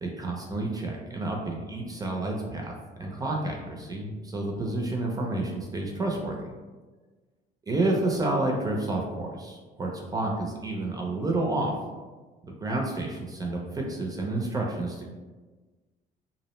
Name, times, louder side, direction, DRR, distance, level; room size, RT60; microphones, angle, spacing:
voice 1, 0.0-2.7 3.0-6.4 7.7-11.7 12.5-15.1, right 2 dB, 20° right, 0 dB, 0.4 m, -30 dB
2.5 x 2.0 x 2.9 m, 1.3 s
cardioid pair, 110°, 17 cm